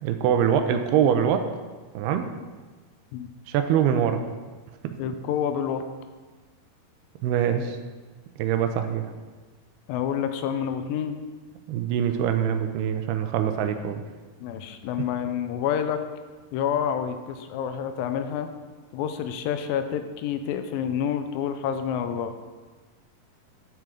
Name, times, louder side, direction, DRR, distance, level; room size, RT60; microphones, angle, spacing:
voice 1, 0.0-1.4 2.0-2.3 3.5-4.2 4.8-4.9 7.2-7.8 8.4-9.0 11.7-14.0, right 9 dB, 90° right, 7 dB, 2.7 m, -23 dB
voice 2, 5.0-5.8 9.9-11.2 14.4-16.0 16.5-18.5 18.9-22.3, left 8 dB, 80° left, 8 dB, 2.2 m, -28 dB
10.5 x 7.6 x 3.7 m, 1.3 s
omnidirectional pair, 4.6 m